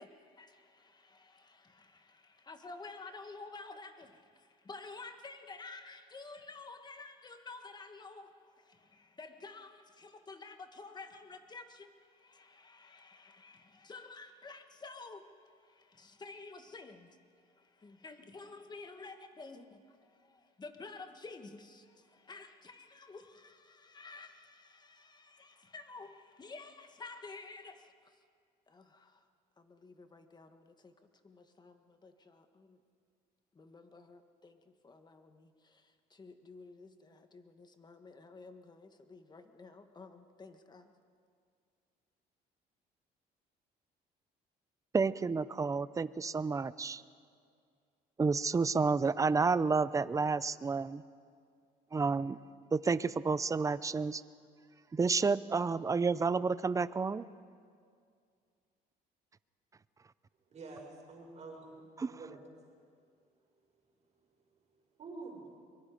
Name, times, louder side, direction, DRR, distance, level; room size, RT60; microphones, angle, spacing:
voice 1, 0.0-28.2 28.7-29.3 29.6-32.8 33.5-40.9, left 3 dB, 25° left, 1.6 m, -51 dB
voice 2, 44.9-47.0 48.2-51.0 51.9-52.4 52.7-54.2 54.9-57.3 62.0-62.1, right 4 dB, 20° right, 0.5 m, -30 dB
voice 3, 60.5-62.4 65.0-65.6, right 3 dB, 40° right, 5.5 m, -48 dB
23.5 x 23.0 x 5.1 m
cardioid pair, 110°, 17 cm